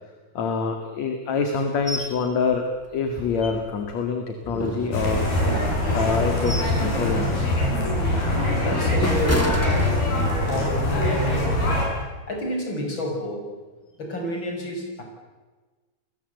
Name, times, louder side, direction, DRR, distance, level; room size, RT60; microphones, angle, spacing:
voice 1, 0.3-2.7 2.9-5.3 5.9-7.5, left 5 dB, 50° left, 5 dB, 3.1 m, -26 dB
sound 1, 1.9-2.2 2.5-2.6 3.1-3.9 4.4-5.5 6.0-6.8 7.2-7.5 8.0-10.5 10.9-11.1, equal, 5° left, 1.7 m, -30 dB
sound 2, 4.9-11.9, left 1 dB, 80° left, 9.8 m, -23 dB
voice 2, 8.6-11.7 12.3-13.5 14.0-15.0, left 1 dB, 30° left, 2 dB, 6.4 m, -30 dB
29.5 x 22.0 x 8.1 m, 1.3 s
omnidirectional pair, 4.3 m